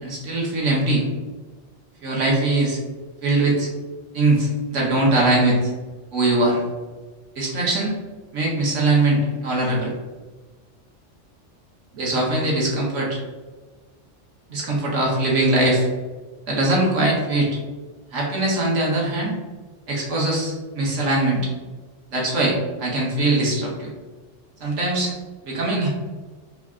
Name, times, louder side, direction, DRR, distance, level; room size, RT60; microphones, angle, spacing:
voice 1, 0.0-1.1 2.0-2.8 3.2-3.7 4.1-5.7 6.1-6.6 7.3-7.9 8.3-9.9 11.9-13.2 14.5-15.9 16.5-17.5 18.1-19.3 19.9-21.5 22.1-23.9 24.6-25.1 25.4-25.9, right 2 dB, 85° right, -3 dB, 1.3 m, -21 dB
3.3 x 2.4 x 3.5 m, 1.3 s
omnidirectional pair, 1.2 m